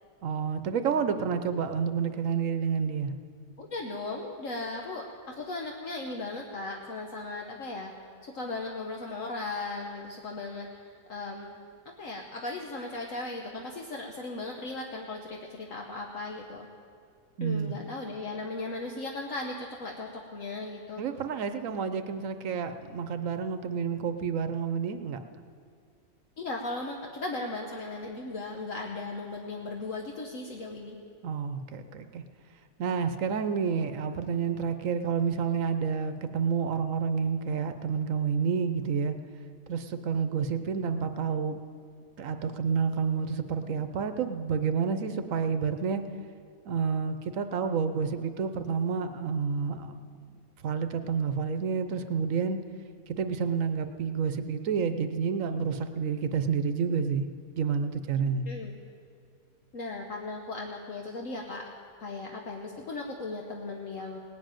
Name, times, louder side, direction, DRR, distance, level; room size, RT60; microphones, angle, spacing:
voice 1, 0.2-3.1 17.4-17.7 21.0-25.2 31.2-32.2 32.8-39.1 39.7-41.6 42.2-46.0 46.6-49.9 50.3-52.6 53.1-57.3 57.6-58.5, right 6 dB, 65° right, 9 dB, 1.1 m, -29 dB
voice 2, 3.6-7.9 8.2-11.6 11.8-16.7 17.4-21.0 26.4-31.0 58.5-58.7 59.7-61.7 62.0-64.2, left 2 dB, 60° left, 0 dB, 1.4 m, -37 dB
18.0 x 7.6 x 9.0 m, 2.2 s
omnidirectional pair, 1.6 m